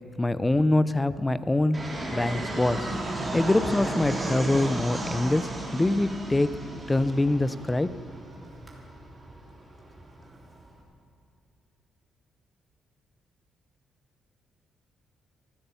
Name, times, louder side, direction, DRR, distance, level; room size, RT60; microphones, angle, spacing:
voice 1, 0.2-1.8 2.1-2.9 3.3-6.6 6.9-7.9, left 2 dB, 15° left, 15 dB, 0.6 m, -24 dB
Fixed-wing aircraft airplane, 1.7-10.8, right 1 dB, 20° right, 3.1 m, -34 dB
15.0 x 12.5 x 7.1 m, 2.5 s
cardioid pair, 90°, 0 cm